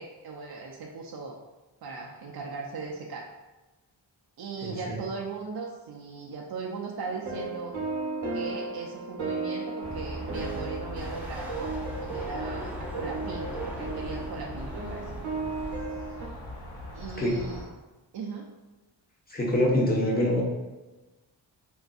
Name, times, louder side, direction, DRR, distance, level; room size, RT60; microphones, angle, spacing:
voice 1, 0.0-1.4 1.8-3.3 4.4-7.7 8.3-15.1 16.9-17.6 18.1-18.5, right 4 dB, 50° right, -1 dB, 0.5 m, -38 dB
voice 2, 4.6-5.0 17.2-17.3 19.3-20.4, left 1 dB, 20° left, -3 dB, 1.0 m, -25 dB
sound 1, 7.0-16.3, right 3 dB, 75° right, 0.9 m, -35 dB
sound 2, 9.8-17.7, left 1 dB, 60° left, 1.1 m, -40 dB
sound 3, 10.3-15.8, right 1 dB, 5° right, 0.7 m, -41 dB
3.7 x 2.5 x 2.3 m, 1.1 s
cardioid pair, 45°, 47 cm